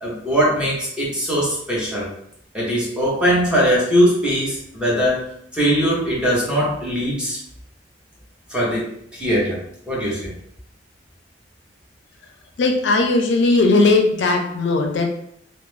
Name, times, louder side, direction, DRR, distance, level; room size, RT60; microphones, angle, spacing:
voice 1, 0.0-2.1 2.5-5.3 5.5-7.4 8.5-8.8 9.1-9.6 9.9-10.2, equal, 5° right, -7 dB, 0.9 m, -20 dB
voice 2, 12.6-15.1, left 3 dB, 80° left, 3 dB, 0.4 m, -17 dB
2.4 x 2.0 x 3.1 m, 0.71 s
head